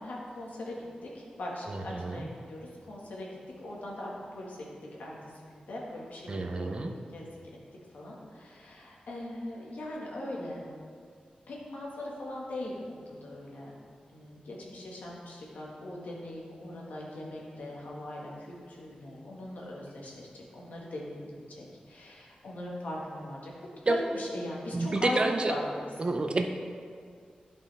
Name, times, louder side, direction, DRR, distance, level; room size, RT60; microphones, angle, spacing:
voice 1, 0.0-3.3 3.6-4.7 5.0-5.2 5.5-6.7 7.1-7.3 7.9-10.6 11.5-13.7 14.1-23.5 23.8-25.9, left 1 dB, 85° left, -4 dB, 1.6 m, -39 dB
voice 2, 1.7-2.3 6.3-6.9 23.9-24.0 24.7-25.5 26.0-26.5, right 2 dB, 35° right, 5 dB, 0.5 m, -29 dB
11.0 x 5.4 x 3.4 m, 2.1 s
wide cardioid pair, 140°, 3 cm